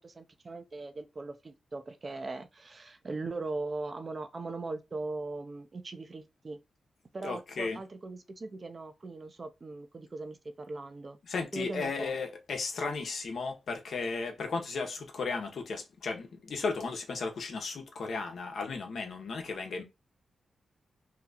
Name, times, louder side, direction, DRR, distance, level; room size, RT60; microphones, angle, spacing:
voice 1, 0.0-6.6 7.1-11.2 11.5-12.1, right 3 dB, 40° right, 0.6 m, -39 dB
voice 2, 7.2-7.8 11.2-19.8, left 4 dB, 70° left, 0.9 m, -35 dB
2.9 x 2.3 x 3.9 m
cardioid pair, 60°, 0 cm